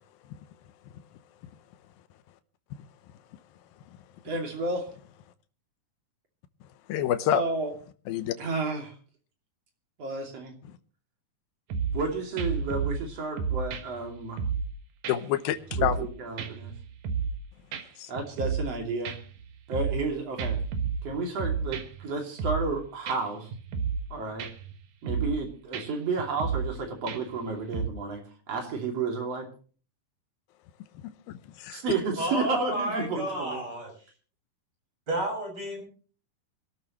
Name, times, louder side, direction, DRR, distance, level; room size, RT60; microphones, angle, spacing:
voice 1, 4.2-4.9 7.3-7.7 8.4-8.9 10.0-10.6 11.9-14.4 15.8-16.7 18.1-19.2 19.7-20.6 21.0-23.5 24.1-24.5 25.0-29.5 31.7-33.6, right 3 dB, 45° right, 3.6 m, -32 dB
voice 2, 6.9-7.4 8.1-8.3 15.1-16.0 18.0-18.1 31.0-31.8, left 11 dB, 85° left, 2.7 m, -28 dB
sound 1, 11.7-12.1 12.4-13.1 13.4-14.7 15.0-15.2 15.5-16.1 16.4-17.4 17.7-17.8 18.2-18.8 19.1-20.1 20.4-22.1 22.4-22.8 23.1-23.2 23.5-24.1 24.4-24.7 25.0-25.4 25.7-25.8 26.2-26.8 27.1-27.4 27.7-27.9, right 6 dB, 65° right, 2.8 m, -31 dB
voice 3, 32.2-33.9 35.1-35.8, right 1 dB, 30° right, 6.5 m, -31 dB
24.5 x 13.0 x 3.1 m
omnidirectional pair, 4.1 m